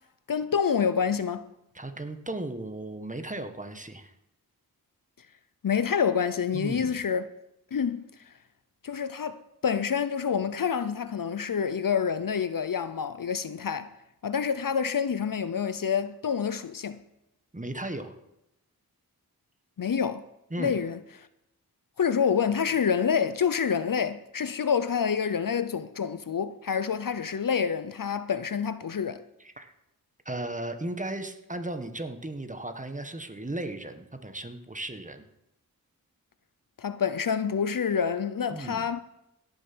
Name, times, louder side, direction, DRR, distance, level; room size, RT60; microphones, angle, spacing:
voice 1, 0.3-1.5 5.6-7.3 7.7-8.0 8.8-13.9 14.2-17.0 19.8-20.2 20.6-21.0 22.0-29.2 36.8-39.0, left 7 dB, 60° left, 0.7 m, -27 dB
voice 2, 1.7-4.1 6.5-6.9 17.5-18.1 20.5-20.7 29.4-29.7 30.2-35.3 38.5-38.9, right 2 dB, 20° right, 1.5 m, -36 dB
17.0 x 6.9 x 6.2 m
cardioid pair, 50°, 37 cm